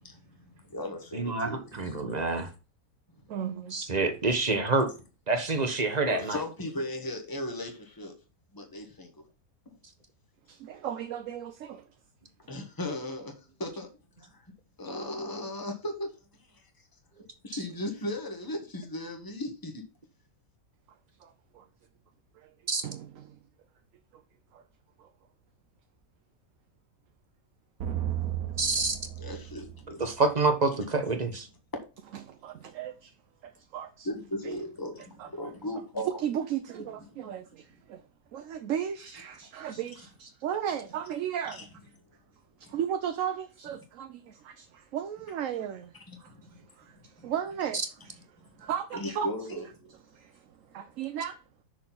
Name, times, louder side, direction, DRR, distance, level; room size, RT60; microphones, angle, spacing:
voice 1, 0.0-2.0 2.4-2.5 3.1-3.2 6.0-8.1 8.5-9.1 12.5-13.9 14.2-14.4 14.8-16.1 17.4-19.8 29.2-30.1 34.0-36.2 37.1-37.3 41.5-41.7 42.6-42.8 46.1-46.7 48.9-49.6, left 1 dB, 15° left, 1.5 m, -37 dB
voice 2, 1.1-2.5 3.7-4.9 5.3-6.4 22.7-22.8 28.6-28.9 30.0-31.5, right 3 dB, 30° right, 1.1 m, -27 dB
voice 3, 3.3-3.8 10.5-11.8 21.2-21.7 22.4-22.5 22.8-23.4 24.5-24.6 25.0-25.1 32.2-33.1 33.4-34.1 34.4-34.5 35.2-35.3 36.2-38.0 38.3-41.7 42.6-46.3 46.8-47.8 48.0-48.1 48.6-49.3 50.1-50.4 50.7-51.4, right 9 dB, 65° right, 1.0 m, -35 dB
sound 1, 27.8-30.5, right 11 dB, 90° right, 1.4 m, -34 dB
6.3 x 4.6 x 5.8 m
omnidirectional pair, 1.5 m